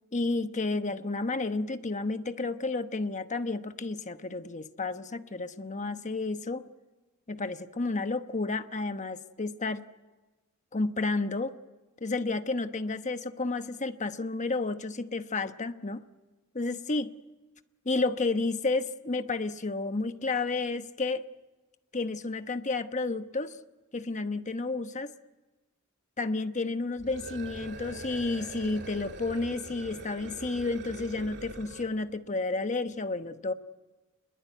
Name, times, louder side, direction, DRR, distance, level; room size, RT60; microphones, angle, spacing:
voice 1, 0.1-6.7 7.3-9.9 10.7-11.6 12.0-16.0 16.5-17.1 17.8-21.2 21.9-23.6 23.9-25.1 26.2-33.5, left 3 dB, 35° left, 9 dB, 1.0 m, -31 dB
sound 1, 27.0-32.0, right 1 dB, 55° right, 2.9 m, -43 dB
28.5 x 21.5 x 9.3 m, 1.2 s
head